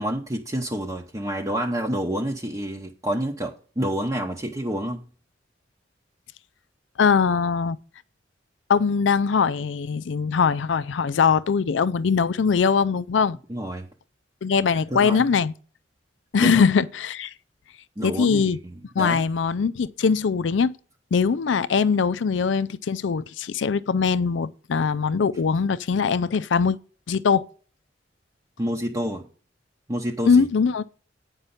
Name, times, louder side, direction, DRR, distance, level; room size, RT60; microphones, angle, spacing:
voice 1, 0.0-5.1 13.5-13.9 14.9-15.4 16.4-16.6 18.0-19.2 28.6-29.3 29.9-30.5, equal, 20° right, 0.8 m, -28 dB
voice 2, 7.0-7.8 8.7-13.4 14.4-15.5 16.3-17.3 18.0-18.6 19.0-20.7 21.1-26.8 27.1-27.4 30.3-30.8, left 5 dB, 80° left, 0.4 m, -21 dB
9.0 x 5.3 x 5.6 m
head